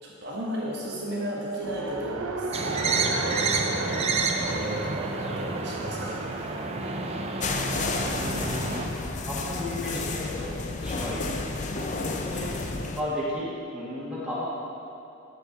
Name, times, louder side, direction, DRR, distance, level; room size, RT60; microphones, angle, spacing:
voice 1, 0.0-6.6 9.8-10.1 11.1-11.4, right 1 dB, 50° right, -5 dB, 1.3 m, -35 dB
Race car auto racing, 1.6-10.7, right 3 dB, 80° right, 0.6 m, -37 dB
sound 1, 2.5-8.9, right 3 dB, 30° right, 0.5 m, -29 dB
sound 2, 7.4-13.0, left 3 dB, 35° left, 0.5 m, -31 dB
voice 2, 8.1-11.2 11.7-12.5 13.0-14.5, left 1 dB, 5° right, -9 dB, 1.8 m, -34 dB
10.5 x 6.9 x 4.1 m, 2.7 s
head